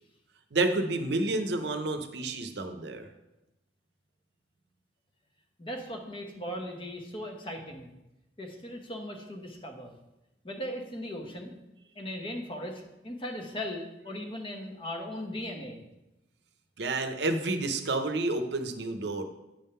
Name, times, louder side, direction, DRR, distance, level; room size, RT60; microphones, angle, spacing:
voice 1, 0.5-3.1 16.8-19.2, right 2 dB, 70° right, 7 dB, 0.7 m, -30 dB
voice 2, 5.6-7.9 8.4-9.9 10.4-11.5 11.9-15.8, equal, 30° left, 2 dB, 0.9 m, -38 dB
8.7 x 3.7 x 5.5 m, 0.95 s
head